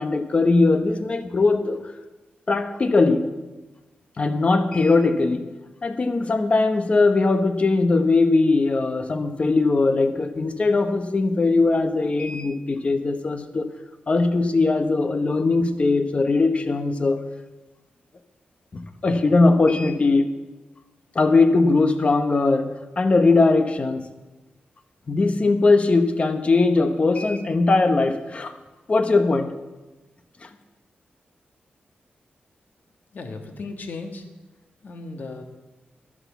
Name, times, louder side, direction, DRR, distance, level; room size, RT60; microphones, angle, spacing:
voice 1, 0.0-1.8 2.5-3.3 4.2-5.5 5.8-13.7 14.1-17.2 18.7-20.3 21.1-24.1 25.1-28.5 28.9-29.5, left 3 dB, 35° left, 8 dB, 1.0 m, -20 dB
voice 2, 33.1-34.2 34.8-35.4, left 3 dB, 55° left, 5 dB, 1.5 m, -35 dB
11.0 x 10.0 x 7.1 m, 1.1 s
wide cardioid pair, 145°, 4 cm